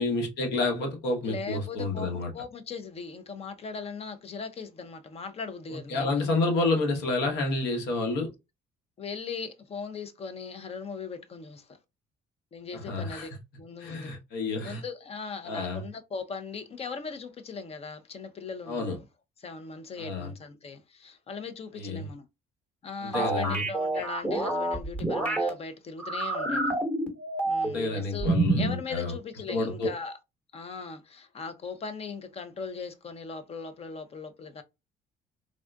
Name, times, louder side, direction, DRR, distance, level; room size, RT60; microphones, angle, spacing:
voice 1, 0.0-2.3 5.9-8.3 12.7-13.3 13.8-14.8 15.5-15.8 18.7-19.0 20.0-20.3 21.8-22.1 23.0-23.6 27.6-29.1 29.5-29.9, left 3 dB, 90° left, 1.0 m, -29 dB
voice 2, 1.2-6.3 9.0-11.8 12.5-13.3 13.6-14.1 14.6-19.0 19.4-22.2 22.8-26.8 27.4-30.1 30.5-34.6, left 5 dB, 35° left, 0.6 m, -39 dB
sound 1, 23.1-25.5 26.0-27.9 28.2-28.8, right 2 dB, 10° left, 1.2 m, -28 dB
3.5 x 2.4 x 2.2 m
cardioid pair, 110°, 17 cm